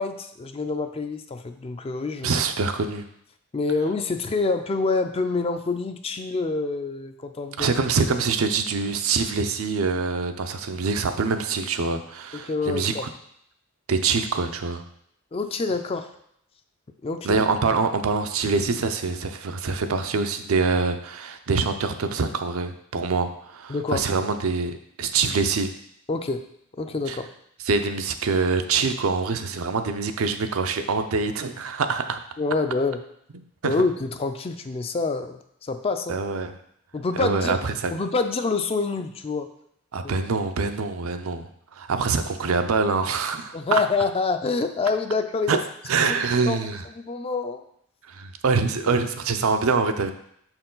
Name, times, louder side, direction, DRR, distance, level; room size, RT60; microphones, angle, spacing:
voice 1, 0.0-2.3 3.5-7.7 12.3-13.1 15.3-16.1 17.0-17.4 23.7-24.0 26.1-26.5 26.8-27.3 32.4-33.0 33.6-36.2 36.9-37.6 37.9-39.5 40.0-40.1 43.5-45.6 46.0-46.1 46.5-46.6 46.9-47.6 48.8-49.0, left 3 dB, 25° left, 8 dB, 0.4 m, -26 dB
voice 2, 2.2-3.1 7.6-12.9 13.9-14.8 17.2-25.7 27.1-27.2 27.7-32.2 33.6-33.7 36.1-36.5 37.2-37.9 39.9-43.8 45.5-45.6 45.9-46.8 48.1-50.1, right 4 dB, 75° right, 7 dB, 0.5 m, -25 dB
6.2 x 4.5 x 3.9 m, 0.72 s
head